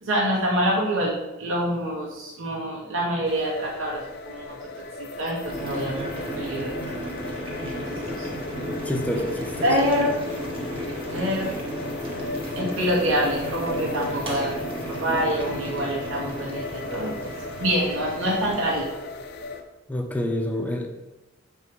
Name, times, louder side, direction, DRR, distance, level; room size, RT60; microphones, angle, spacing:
voice 1, 0.0-1.1 1.4-4.6 5.0-6.8 7.9-8.3 9.6-10.2 11.1-11.5 12.5-14.6 15.0-17.3 17.6-18.8, equal, 80° right, -4 dB, 2.2 m, -26 dB
sound 1, 3.2-19.6, left 3 dB, 55° left, 0.8 m, -36 dB
Boiling, 5.4-18.9, right 1 dB, 25° right, 1.4 m, -34 dB
voice 2, 8.9-9.7 19.9-20.9, left 1 dB, 10° left, 2 dB, 0.9 m, -27 dB
7.1 x 5.5 x 4.8 m, 1.0 s
head